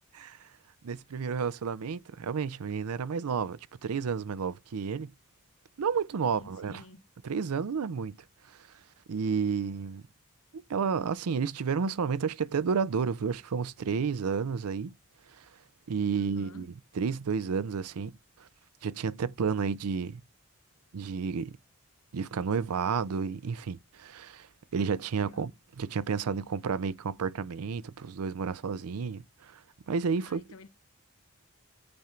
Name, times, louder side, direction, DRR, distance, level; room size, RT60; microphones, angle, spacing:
voice 1, 0.8-5.1 5.8-6.8 7.2-8.2 9.1-10.0 10.5-14.9 15.4-15.5 15.9-18.1 18.8-20.2 20.9-21.6 22.1-24.5 24.7-29.6 29.9-30.4, right 6 dB, 85° right, 0.5 m, -31 dB
voice 2, 6.2-7.0 16.1-16.7 25.2-25.5 30.2-30.7, left 3 dB, 75° left, 0.9 m, -52 dB
8.7 x 3.7 x 4.4 m
head